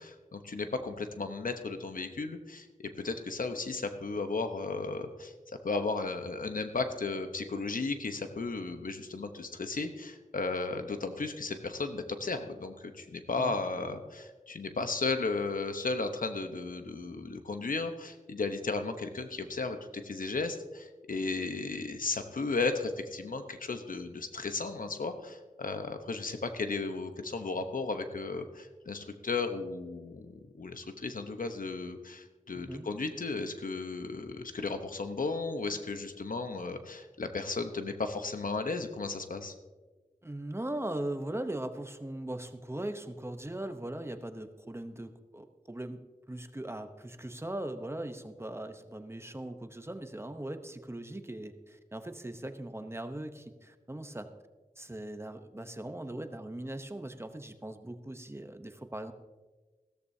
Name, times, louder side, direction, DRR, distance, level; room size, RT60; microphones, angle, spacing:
voice 1, 0.0-5.3 5.6-19.8 20.0-39.5, left 3 dB, 85° left, 7 dB, 0.9 m, -35 dB
voice 2, 32.5-32.9 40.2-46.0 46.3-54.3 54.8-59.1, right 1 dB, 20° right, 8 dB, 0.8 m, -39 dB
15.5 x 13.5 x 2.8 m, 1.3 s
wide cardioid pair, 70°, 14 cm